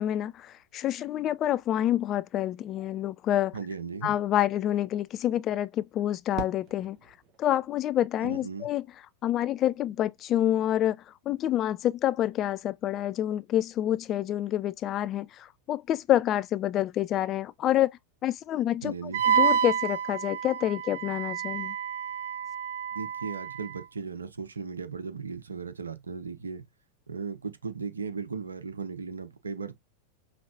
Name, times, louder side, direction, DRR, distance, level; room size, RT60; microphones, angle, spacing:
voice 1, 0.0-3.6 4.0-7.0 7.4-8.8 9.2-11.0 11.3-17.9 18.2-21.8, left 12 dB, 30° left, 0.3 m, -27 dB
voice 2, 3.5-4.1 8.2-8.7 18.8-19.2 22.9-26.7 27.1-29.7, right 5 dB, 75° right, 0.8 m, -37 dB
Fireworks, 6.3-8.5, right 5 dB, 35° right, 1.4 m, -42 dB
Wind instrument woodwind instrument, 19.1-23.8, right 8 dB, 60° right, 0.4 m, -29 dB
5.3 x 3.2 x 2.7 m
figure-of-eight pair, 90°, 0 cm